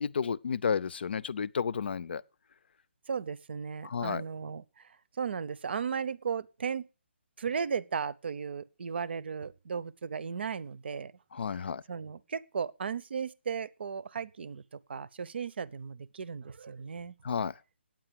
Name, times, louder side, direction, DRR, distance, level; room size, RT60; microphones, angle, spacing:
voice 1, 0.0-2.2 3.8-4.2 11.3-11.8 17.2-17.5, left 6 dB, 60° left, 0.5 m, -31 dB
voice 2, 3.1-4.9 5.2-6.9 7.4-11.1 11.9-17.1, right 6 dB, 60° right, 0.7 m, -36 dB
9.0 x 8.8 x 7.5 m
hypercardioid pair, 165°, 7 cm